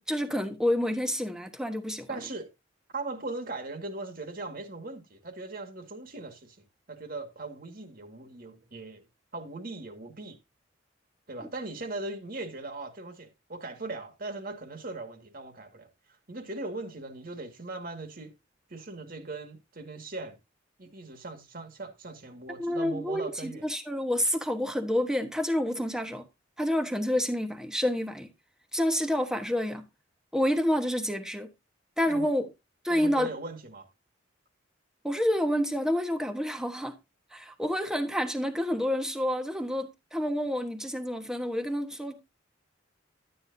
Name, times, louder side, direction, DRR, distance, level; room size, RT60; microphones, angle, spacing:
voice 1, 0.1-2.1 22.6-26.3 26.6-28.3 28.7-29.9 30.3-31.5 32.0-32.5 32.8-33.3 35.0-36.9 37.3-42.2, equal, 5° right, 1.2 m, -28 dB
voice 2, 2.1-2.5 2.9-6.6 6.9-9.0 9.3-10.4 11.3-15.9 16.3-18.3 18.7-20.4 20.8-23.6 32.1-32.3 32.9-33.9, right 2 dB, 50° right, 1.9 m, -39 dB
12.0 x 9.2 x 2.7 m
head